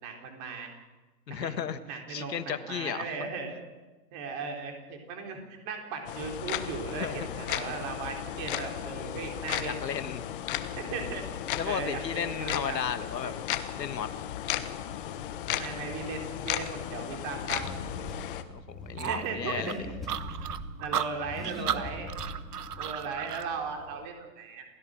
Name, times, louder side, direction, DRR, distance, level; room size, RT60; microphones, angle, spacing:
voice 1, 0.0-0.7 1.3-1.5 1.8-3.6 4.1-9.7 10.8-11.2 11.7-12.8 13.2-13.3 15.5-17.7 18.0-18.1 18.9-19.9 20.8-22.1 22.8-24.7, right 5 dB, 25° right, 3 dB, 3.8 m, -37 dB
voice 2, 1.3-1.8 2.1-3.1 7.0-7.2 9.6-10.3 11.5-13.3 13.8-14.1 18.5-19.8, left 8 dB, 75° left, 11 dB, 1.8 m, -34 dB
sound 1, 6.1-18.4, left 11 dB, 30° left, 1.2 m, -35 dB
Car / Accelerating revving vroom, 14.9-24.0, left 1 dB, ahead, 2.9 m, -43 dB
sound 2, 19.0-23.5, right 9 dB, 65° right, 1.4 m, -34 dB
28.0 x 16.5 x 6.5 m, 1.2 s
hypercardioid pair, 150°, 49 cm